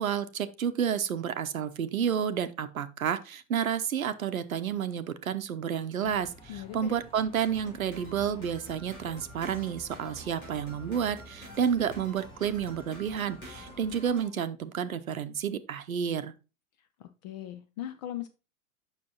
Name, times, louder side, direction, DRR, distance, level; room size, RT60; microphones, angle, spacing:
voice 1, 0.0-16.3, right 8 dB, 70° right, 0.8 m, -30 dB
sound 1, 6.0-14.0, equal, 10° left, 1.1 m, -50 dB
voice 2, 6.5-7.0 17.0-18.3, left 12 dB, 30° left, 0.5 m, -39 dB
sound 2, 7.4-14.3, equal, 85° left, 3.9 m, -50 dB
7.3 x 6.1 x 2.9 m
figure-of-eight pair, 95°, 43 cm